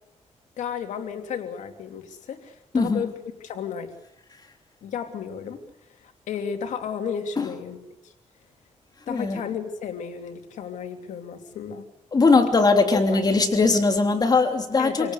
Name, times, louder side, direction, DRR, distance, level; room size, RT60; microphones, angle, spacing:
voice 1, 0.6-3.2 3.4-3.9 4.8-5.6 6.0-7.8 8.0-8.1 9.1-11.9 12.9-13.2 14.8-15.1, left 7 dB, 85° left, 5 dB, 2.9 m, -33 dB
voice 2, 9.1-9.4 12.1-15.1, left 3 dB, 35° left, 4 dB, 3.5 m, -20 dB
27.0 x 18.0 x 8.3 m, 0.85 s
cardioid pair, 110°, 12 cm